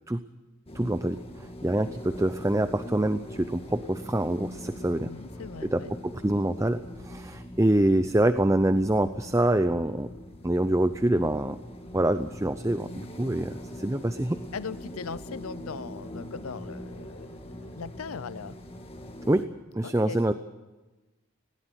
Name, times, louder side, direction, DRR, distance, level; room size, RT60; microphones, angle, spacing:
sound 1, 0.7-19.4, equal, 25° left, 1.9 m, -42 dB
voice 1, 0.7-5.1 5.6-10.1 10.4-11.6 11.9-14.4 19.3-20.3, right 1 dB, 15° right, 10 dB, 0.6 m, -26 dB
voice 2, 5.0-5.9 14.5-18.6 19.8-20.2, left 5 dB, 80° left, 16 dB, 0.6 m, -39 dB
20.0 x 17.0 x 8.1 m, 1.1 s
head